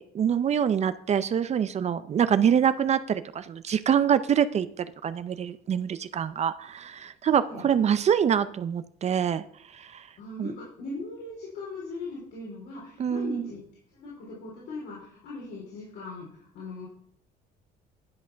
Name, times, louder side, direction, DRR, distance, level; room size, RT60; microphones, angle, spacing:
voice 1, 0.0-9.4 9.7-10.1 10.4-10.5 13.0-13.5, right 8 dB, 40° right, 12 dB, 0.6 m, -25 dB
voice 2, 7.2-7.7 10.2-13.6 13.9-16.9, left 3 dB, 80° left, -5 dB, 4.0 m, -39 dB
11.0 x 6.3 x 5.7 m, 0.64 s
cardioid pair, 110°, 17 cm